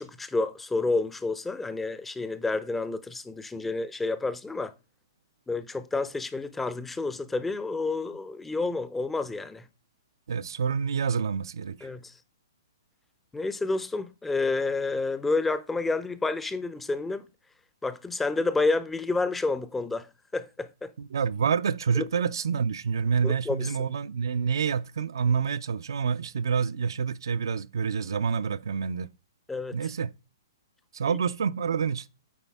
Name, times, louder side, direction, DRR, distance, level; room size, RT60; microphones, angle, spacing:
voice 1, 0.0-4.7 5.5-9.7 11.8-12.1 13.3-17.2 17.8-20.1 20.3-20.9 22.0-22.1 23.2-23.8 29.5-29.8, left 3 dB, 5° left, 0.4 m, -29 dB
voice 2, 10.3-11.9 21.0-29.1 29.7-30.1 30.9-32.1, right 6 dB, 80° right, 0.4 m, -27 dB
8.5 x 3.5 x 3.4 m
hypercardioid pair, 150°, 2 cm